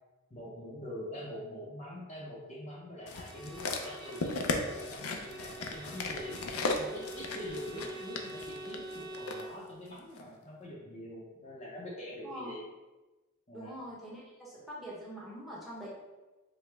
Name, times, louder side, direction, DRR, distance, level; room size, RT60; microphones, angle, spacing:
voice 1, 0.3-4.3 4.7-6.5 6.8-12.6 13.5-13.8, left 1 dB, 30° left, -5 dB, 0.6 m, -44 dB
Bowed string instrument, 3.0-9.7, right 1 dB, 20° right, 0.3 m, -46 dB
sound 1, 3.1-9.4 10.2-10.3, left 3 dB, 85° left, 0.5 m, -36 dB
voice 2, 12.2-12.5 13.5-15.9, right 1 dB, ahead, -6 dB, 0.9 m, -44 dB
4.8 x 2.1 x 3.4 m, 1.1 s
head